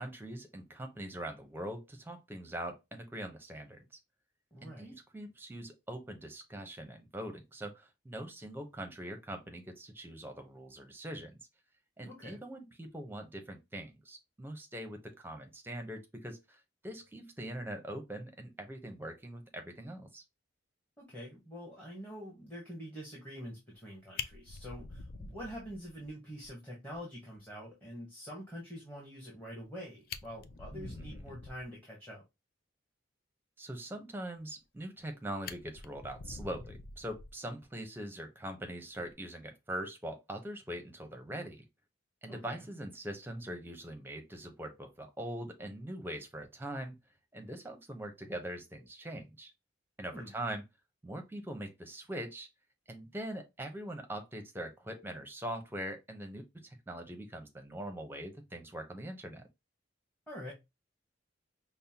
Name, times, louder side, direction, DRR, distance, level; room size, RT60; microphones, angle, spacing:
voice 1, 0.0-3.8 4.6-11.4 12.0-20.2 30.7-31.2 33.6-41.6 42.2-46.9 47.3-49.5 50.0-50.6 51.0-52.5 52.9-59.4, right 1 dB, 10° right, 0.7 m, -42 dB
voice 2, 4.5-5.0 12.0-12.4 21.0-32.2 42.3-42.7 50.1-50.3 60.3-60.5, equal, 10° left, 1.1 m, -46 dB
Fire, 23.7-23.8 24.2-26.1 26.4-26.5 26.9-27.0 27.4-27.5 29.6-29.7 30.0-31.7 34.6-35.1 35.4-37.6 38.9-39.2, left 5 dB, 50° left, 0.3 m, -45 dB
5.3 x 2.1 x 2.8 m
head